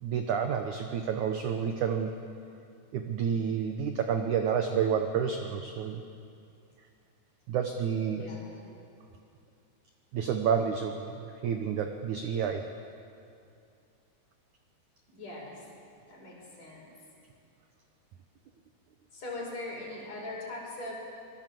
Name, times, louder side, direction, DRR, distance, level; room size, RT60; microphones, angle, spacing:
voice 1, 0.0-2.1 2.9-6.0 7.5-8.2 10.1-12.6, right 7 dB, 70° right, 5 dB, 1.8 m, -29 dB
voice 2, 8.1-8.5 15.1-15.6 16.1-16.8 19.1-21.0, left 2 dB, 40° left, -2 dB, 6.4 m, -40 dB
25.5 x 21.0 x 7.7 m, 2.5 s
omnidirectional pair, 4.8 m